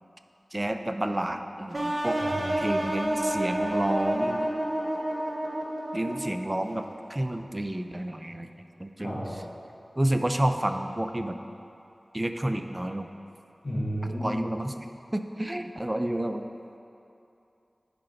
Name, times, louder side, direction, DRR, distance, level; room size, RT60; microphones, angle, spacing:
voice 1, 0.5-2.2 2.6-4.5 5.9-8.5 8.8-9.2 10.0-11.4 12.1-13.1 14.2-14.7 15.1-16.4, right 1 dB, 25° right, 7 dB, 0.4 m, -30 dB
sound 1, 1.7-6.6, right 1 dB, 45° right, 0.9 m, -29 dB
voice 2, 2.2-2.8 9.0-9.2 13.6-14.5, equal, 45° left, -7 dB, 1.9 m, -33 dB
9.9 x 5.2 x 4.3 m, 2.8 s
wide cardioid pair, 55°, 0 cm